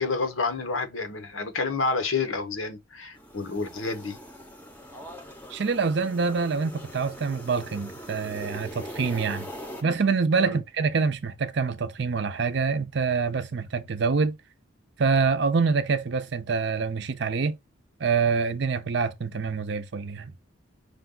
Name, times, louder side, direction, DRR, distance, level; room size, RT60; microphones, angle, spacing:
voice 1, 0.0-4.2 10.5-10.6, left 4 dB, 85° left, 0.9 m, -29 dB
sound 1, 3.1-9.8, equal, 10° left, 0.7 m, -42 dB
voice 2, 5.5-9.5 9.8-14.4 15.0-17.6 18.0-20.3, right 5 dB, 60° right, 0.5 m, -26 dB
5.0 x 2.3 x 3.7 m
head